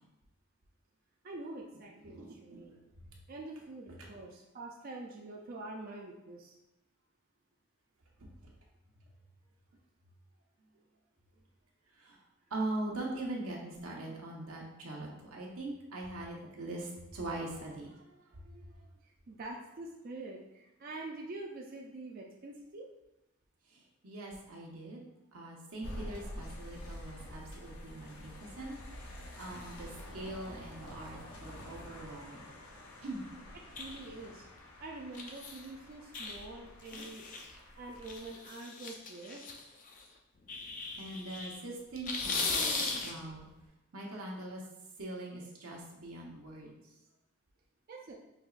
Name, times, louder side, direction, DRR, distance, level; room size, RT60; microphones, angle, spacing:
voice 1, 1.2-2.8 3.3-6.6 19.0-22.9 33.7-34.5 34.8-37.3 37.8-39.5 47.9-48.1, right 2 dB, 45° right, -1 dB, 0.4 m, -45 dB
voice 2, 2.1-2.6 3.1-3.2 8.2-8.3 11.9-12.2 12.5-18.9 23.7-25.0 25.3-28.7 29.0-32.5 33.0-33.2 40.6-43.5 43.9-44.6 45.0-46.7, right 2 dB, 90° right, -2 dB, 0.9 m, -42 dB
sound 1, 25.8-38.5, left 1 dB, 85° left, 0.7 m, -48 dB
sound 2, 33.8-34.2 35.1-35.6 36.1-36.4 36.8-37.6 38.0-40.0 40.5-41.6 41.9-43.4, left 3 dB, 35° left, 0.4 m, -37 dB
5.3 x 2.9 x 2.4 m, 0.94 s
head